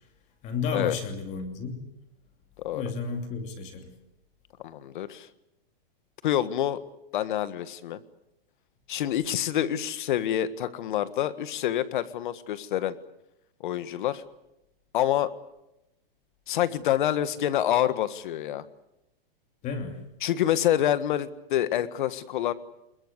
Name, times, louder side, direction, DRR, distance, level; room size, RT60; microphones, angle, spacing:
voice 1, 0.4-1.8 2.7-3.9 19.6-20.0, left 5 dB, 25° left, 5 dB, 2.9 m, -32 dB
voice 2, 4.6-5.3 6.2-6.8 7.1-8.0 8.9-13.0 13.6-14.2 14.9-15.3 16.5-18.6 20.2-22.5, left 11 dB, 55° left, 13 dB, 1.7 m, -27 dB
25.5 x 21.5 x 8.2 m, 0.87 s
hypercardioid pair, 160°, 29 cm